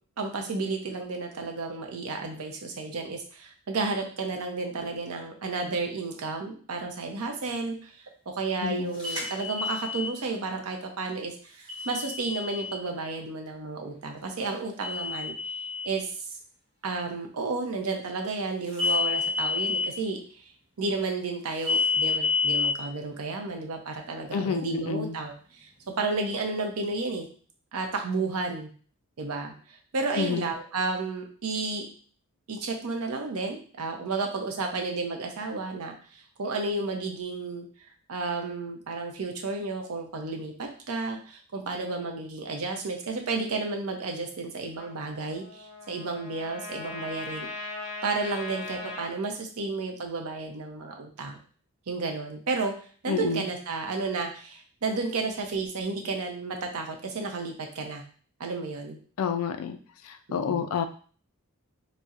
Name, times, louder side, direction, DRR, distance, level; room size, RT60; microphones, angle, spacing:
voice 1, 0.2-8.0 8.3-15.3 15.8-16.2 16.8-20.5 20.8-27.3 27.7-28.7 29.2-31.9 32.5-35.9 36.4-37.7 38.1-47.7 48.0-51.4 51.9-52.7 53.0-58.0 58.4-59.0 60.3-60.6, right 3 dB, 85° right, 3 dB, 0.6 m, -32 dB
voice 2, 8.6-8.9 24.3-25.2 30.2-30.5 53.1-53.4 59.2-59.8 60.0-60.8, left 6 dB, 75° left, 8 dB, 0.3 m, -29 dB
sound 1, 9.0-10.1 11.7-12.8 14.8-15.9 18.7-19.9 21.7-22.7, left 4 dB, 20° right, 1.2 m, -28 dB
Trumpet, 44.7-49.1, left 3 dB, 55° left, 0.8 m, -39 dB
4.0 x 2.0 x 2.4 m, 0.43 s
head